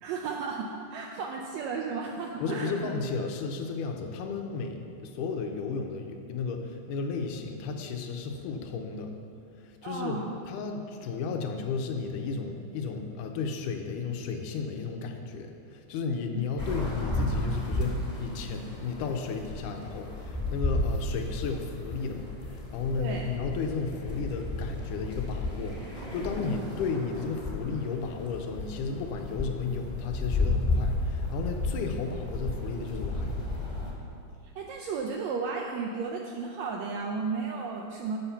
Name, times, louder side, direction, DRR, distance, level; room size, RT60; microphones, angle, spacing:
voice 1, 0.0-2.7 9.8-10.4 16.1-16.4 23.0-23.2 34.5-38.2, right 5 dB, 80° right, 0 dB, 1.6 m, -34 dB
voice 2, 2.4-9.1 9.6-10.2 10.5-33.4, left 5 dB, 90° left, 4 dB, 2.2 m, -33 dB
sound 1, 16.6-33.9, left 2 dB, 20° left, 1.0 m, -33 dB
7.4 x 5.7 x 6.9 m, 2.5 s
omnidirectional pair, 3.7 m